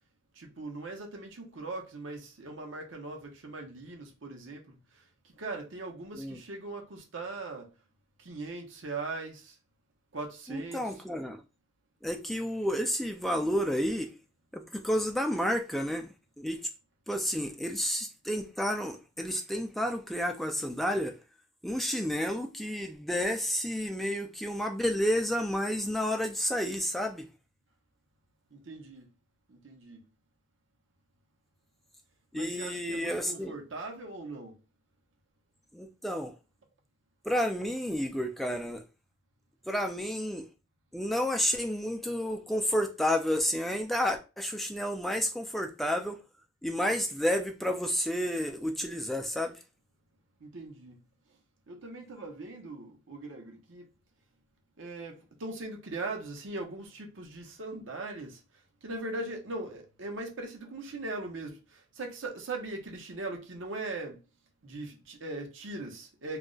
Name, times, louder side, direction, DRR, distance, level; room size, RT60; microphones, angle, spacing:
voice 1, 0.4-4.7 5.4-7.7 8.2-9.6 10.1-11.0 28.5-29.1 29.5-30.0 32.3-34.6 50.4-51.0 51.7-53.9 54.8-58.4 58.8-64.2 64.6-66.4, right 2 dB, 80° right, 0.8 m, -40 dB
voice 2, 10.5-11.4 12.0-14.1 14.5-16.6 17.1-21.1 21.6-27.3 32.3-33.5 35.7-36.3 37.2-38.8 39.7-40.5 40.9-46.2 46.6-49.5, equal, ahead, 0.3 m, -30 dB
2.4 x 2.1 x 3.8 m
head